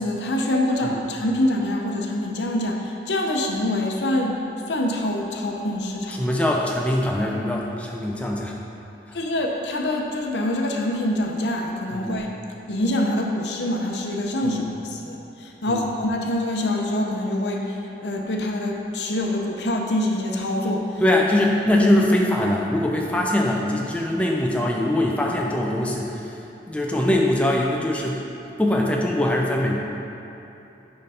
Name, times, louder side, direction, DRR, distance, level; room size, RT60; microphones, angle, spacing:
voice 1, 0.0-6.2 9.1-12.3 12.7-21.0, left 1 dB, 85° left, 1 dB, 0.7 m, -25 dB
voice 2, 6.1-8.6 9.1-9.2 11.9-12.2 14.4-14.6 15.7-15.9 21.0-26.4 26.7-28.2 28.6-29.8, left 1 dB, 5° left, -2 dB, 0.4 m, -22 dB
5.4 x 4.0 x 5.5 m, 3.0 s
head